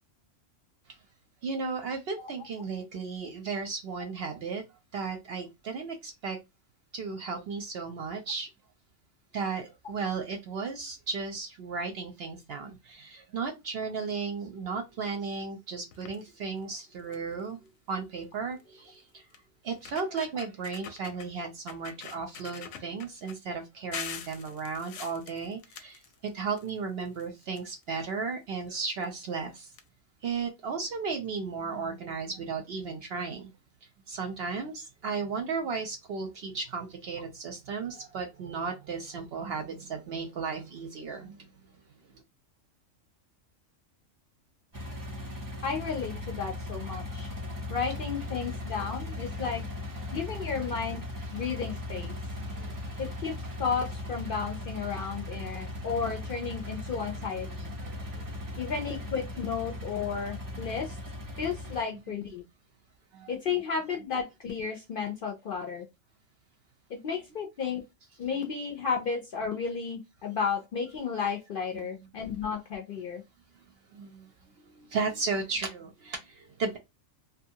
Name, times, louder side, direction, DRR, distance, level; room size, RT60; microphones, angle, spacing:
voice 1, 1.4-4.6 4.9-6.4 6.9-8.5 9.3-17.6 17.9-19.2 19.6-26.0 26.3-29.7 30.2-33.5 34.1-41.4 48.5-49.6 50.0-50.7 52.0-53.1 53.4-53.6 55.4-55.7 56.9-57.5 57.8-58.6 61.9-62.0 63.1-63.3 71.7-71.8 73.9-74.3 74.6-76.8, right 4 dB, 60° right, 0.7 m, -35 dB
sound 1, 15.9-16.3 16.8-16.9 17.1-17.4 18.6-18.7 19.3-19.4 19.7-21.3 21.7-23.4 23.9-26.7 27.0-28.1 29.0-29.1 29.4-29.5 29.7-29.8, left 7 dB, 90° left, 1.0 m, -43 dB
sound 2, 44.7-61.8, left 1 dB, 20° right, 0.5 m, -38 dB
voice 2, 45.6-47.3 47.7-49.6 50.1-52.2 53.0-57.7 58.6-61.0 61.4-62.4 63.3-65.9 66.9-67.8 68.2-73.2, left 6 dB, 60° left, 0.6 m, -33 dB
2.7 x 2.2 x 2.7 m
omnidirectional pair, 1.4 m